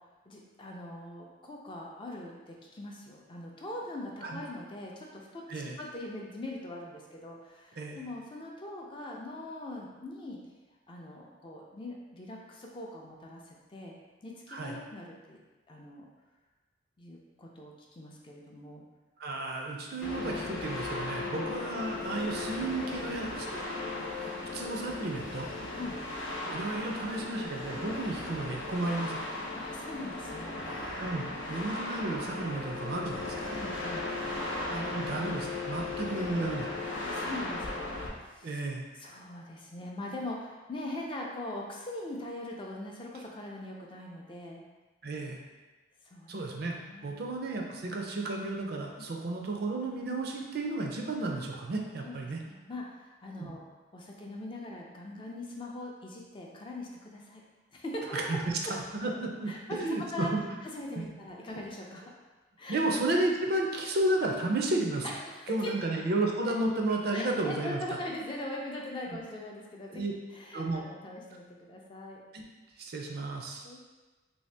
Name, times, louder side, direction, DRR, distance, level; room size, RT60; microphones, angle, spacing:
voice 1, 0.3-10.4 10.9-13.9 14.2-15.4 15.7-16.1 17.0-18.8 21.1-21.5 25.7-26.0 29.5-30.6 33.5-34.2 36.9-38.6 38.9-44.6 46.0-46.4 46.7-47.2 49.0-49.2 52.0-53.6 53.9-57.4 57.7-58.2 59.5-60.3 60.6-62.1 62.6-62.8 65.0-65.8 67.1-70.0 70.3-72.2 73.6-73.8, left 1 dB, 25° left, -1 dB, 0.4 m, -41 dB
voice 2, 19.2-23.6 24.0-25.5 26.5-29.2 31.0-33.5 34.7-36.7 38.4-38.8 45.0-45.4 46.3-46.8 47.0-52.4 53.4-53.5 58.1-58.4 58.7-59.5 59.8-60.4 61.0-61.1 62.7-65.1 65.5-67.8 69.1-69.2 69.9-70.1 70.5-70.8 72.3-72.4 72.8-73.6, right 2 dB, 50° right, 1 dB, 0.4 m, -33 dB
sound 1, 20.0-38.1, left 2 dB, 80° left, 0.6 m, -36 dB
3.2 x 2.7 x 3.3 m, 1.2 s
head